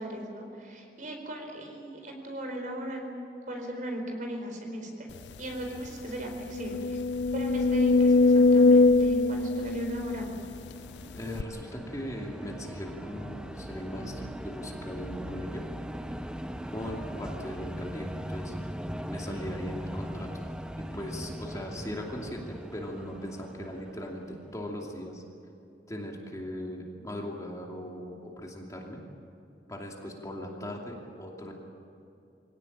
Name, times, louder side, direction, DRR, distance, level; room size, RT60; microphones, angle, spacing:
voice 1, 0.0-3.1 3.4-5.1 5.4-7.0 7.3-10.3, right 1 dB, 50° right, 3 dB, 4.7 m, -37 dB
sound 1, 5.4-5.5 5.8-5.9 6.5-10.7 11.4-11.5, left 3 dB, 75° left, 0.5 m, -22 dB
sound 2, 10.3-24.7, equal, 5° right, 0.7 m, -40 dB
voice 2, 11.1-15.6 16.7-18.5 19.1-20.3 20.8-25.2 25.9-29.0 29.7-31.5, equal, 20° left, 0 dB, 2.8 m, -39 dB
24.5 x 17.5 x 8.9 m, 2.6 s
head